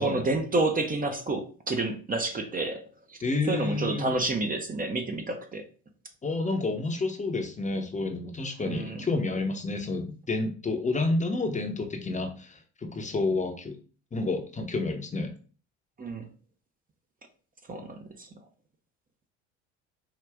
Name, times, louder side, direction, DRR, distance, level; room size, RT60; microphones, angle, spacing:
voice 1, 0.0-2.8 3.1-3.2 3.5-5.6 8.7-9.0 16.0-16.3 17.7-18.3, right 2 dB, 25° right, 0.8 m, -29 dB
voice 2, 3.2-4.1 6.2-13.8 14.1-15.3, left 3 dB, 20° left, 0.8 m, -29 dB
4.7 x 2.5 x 3.4 m
hypercardioid pair, 70°, 35 cm